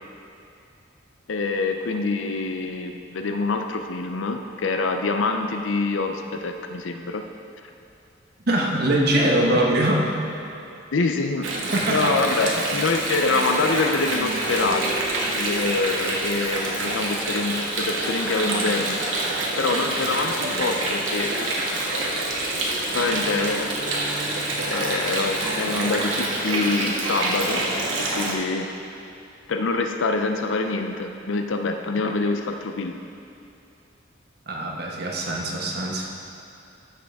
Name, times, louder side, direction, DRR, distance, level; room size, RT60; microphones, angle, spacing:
voice 1, 1.3-7.2 10.9-11.5 11.9-15.0 15.3-19.0 19.6-21.6 22.9-23.7 24.7-27.6 28.2-28.7 29.5-32.9, left 3 dB, 80° left, 5 dB, 0.5 m, -25 dB
voice 2, 8.5-10.2 11.7-12.2 34.5-36.1, right 1 dB, 55° right, -1 dB, 1.2 m, -22 dB
Water, 11.4-28.3, right 2 dB, 90° right, 1.3 m, -26 dB
13.5 x 6.4 x 3.5 m, 2.7 s
head